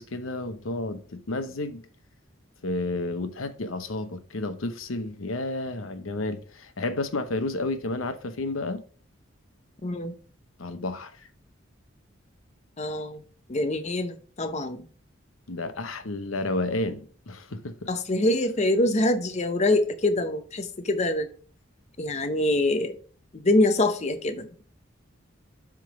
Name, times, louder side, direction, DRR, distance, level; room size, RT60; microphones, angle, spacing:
voice 1, 0.0-1.8 2.6-8.8 10.6-11.2 15.5-17.9, left 2 dB, 85° left, 0.8 m, -31 dB
voice 2, 9.8-10.1 12.8-13.2 13.5-14.9 17.9-21.3 22.0-23.0 23.3-24.6, left 1 dB, 35° left, 0.7 m, -25 dB
7.7 x 3.7 x 5.0 m
head